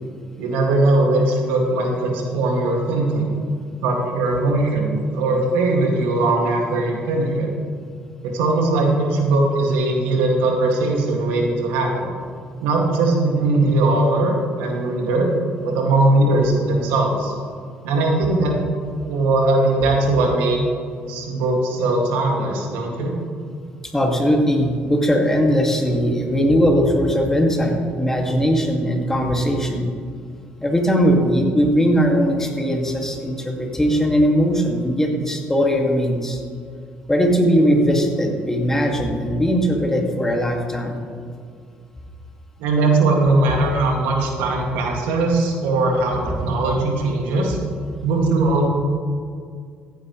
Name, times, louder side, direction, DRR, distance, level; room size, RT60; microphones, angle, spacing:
voice 1, 0.4-3.3 3.8-7.5 8.2-12.1 12.6-15.3 15.6-17.3 17.8-18.6 19.1-20.6 21.0-23.1 42.6-47.6 48.0-48.7, right 2 dB, 90° right, 0 dB, 2.2 m, -20 dB
voice 2, 23.9-29.8 30.6-36.4 37.1-41.0, equal, 10° left, 1 dB, 2.2 m, -19 dB
15.0 x 9.8 x 3.2 m, 2.2 s
supercardioid pair, 80°, 4 cm